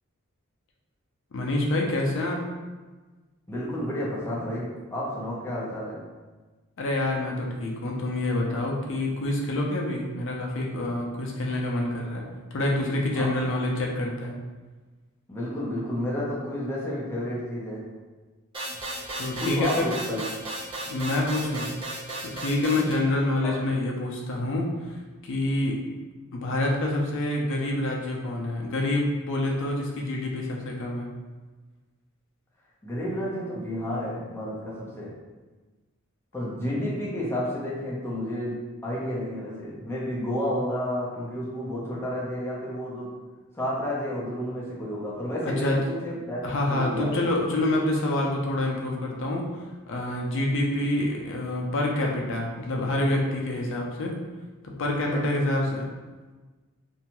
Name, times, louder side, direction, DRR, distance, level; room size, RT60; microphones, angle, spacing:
voice 1, 1.3-2.4 6.8-12.3 12.5-14.4 19.2-19.9 20.9-21.7 22.2-26.0 26.3-31.1 45.4-45.8 46.4-54.2 54.6-55.9, left 1 dB, 60° left, -1 dB, 0.5 m, -27 dB
voice 2, 3.5-6.0 13.1-13.5 15.3-17.8 19.4-20.2 23.4-23.5 32.8-35.1 36.3-43.1 43.5-46.4 46.7-47.3 55.1-55.3, equal, 10° left, -6 dB, 0.6 m, -31 dB
sound 1, 18.5-22.9, right 1 dB, 25° right, 0.7 m, -34 dB
2.6 x 2.2 x 2.9 m, 1.3 s
head